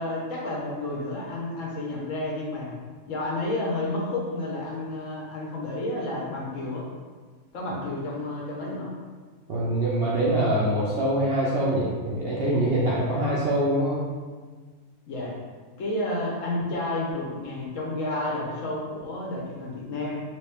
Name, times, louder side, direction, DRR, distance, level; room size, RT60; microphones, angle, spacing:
voice 1, 0.0-2.8 3.1-6.9 7.5-8.9 15.1-15.3 15.8-20.2, left 2 dB, 65° left, -3 dB, 1.1 m, -31 dB
voice 2, 9.5-14.0, right 1 dB, 60° right, -5 dB, 0.7 m, -24 dB
3.0 x 2.9 x 3.3 m, 1.4 s
omnidirectional pair, 1.5 m